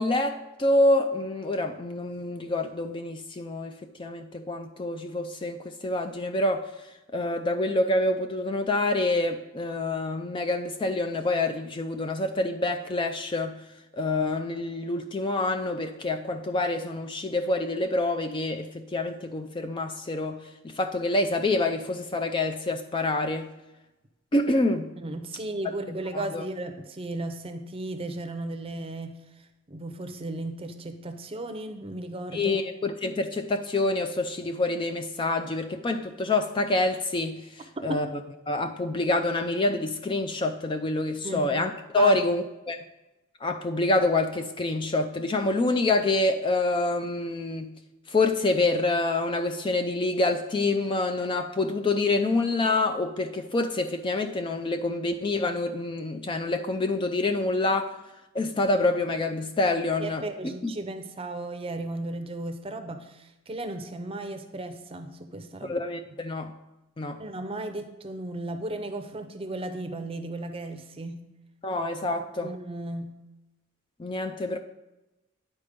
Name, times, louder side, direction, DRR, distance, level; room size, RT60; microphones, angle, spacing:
voice 1, 0.0-3.7 4.0-6.7 7.1-13.6 13.9-20.4 20.8-23.5 24.3-24.9 26.1-26.4 32.3-37.4 37.8-38.1 38.5-42.8 43.4-47.7 48.1-57.9 58.3-60.2 60.6-60.7 65.6-66.5 67.0-67.2 71.6-72.5 74.0-74.6, left 2 dB, 25° left, 6 dB, 0.4 m, -26 dB
voice 2, 25.0-29.2 29.7-32.6 37.8-38.1 41.2-41.5 42.0-42.2 60.0-65.8 67.2-71.3 72.0-72.1 72.4-73.2, right 2 dB, 25° right, 7 dB, 0.6 m, -35 dB
9.9 x 4.3 x 5.1 m, 0.99 s
head